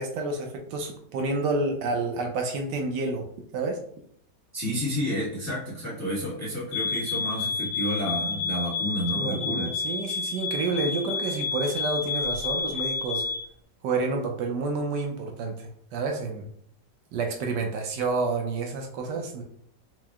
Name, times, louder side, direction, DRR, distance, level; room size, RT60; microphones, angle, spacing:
voice 1, 0.0-3.3 3.5-3.8 9.1-13.3 13.8-16.5 17.1-19.4, right 3 dB, 80° right, 3 dB, 1.3 m, -29 dB
voice 2, 4.5-9.7, equal, 10° left, -6 dB, 0.9 m, -30 dB
sound 1, 6.7-13.5, left 5 dB, 80° left, 1.4 m, -30 dB
4.6 x 2.1 x 3.4 m, 0.64 s
omnidirectional pair, 1.9 m